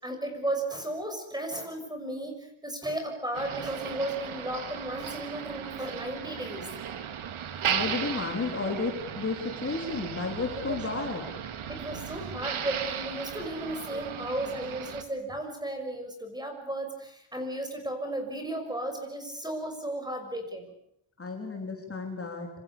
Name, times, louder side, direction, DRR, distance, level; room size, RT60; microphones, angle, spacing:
voice 1, 0.0-6.7 10.6-10.8 11.7-20.6, right 1 dB, 10° right, 5 dB, 6.3 m, -34 dB
Motor vehicle (road), 3.3-15.0, right 8 dB, 85° right, 2.5 m, -36 dB
voice 2, 7.6-11.2 21.2-22.5, left 3 dB, 30° left, 2 dB, 3.9 m, -32 dB
27.0 x 26.5 x 7.1 m, 0.74 s
wide cardioid pair, 155°, 48 cm